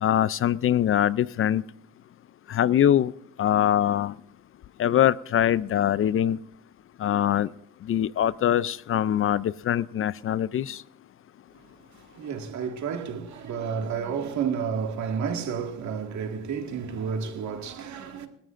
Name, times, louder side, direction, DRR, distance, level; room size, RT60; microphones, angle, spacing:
voice 1, 0.0-1.6 2.5-3.1 3.4-4.1 4.8-6.4 7.0-7.5 7.9-10.8, left 11 dB, 45° left, 0.4 m, -23 dB
voice 2, 12.1-18.3, right 6 dB, 70° right, 2.0 m, -31 dB
25.0 x 13.0 x 2.5 m
cardioid pair, 90°, 30 cm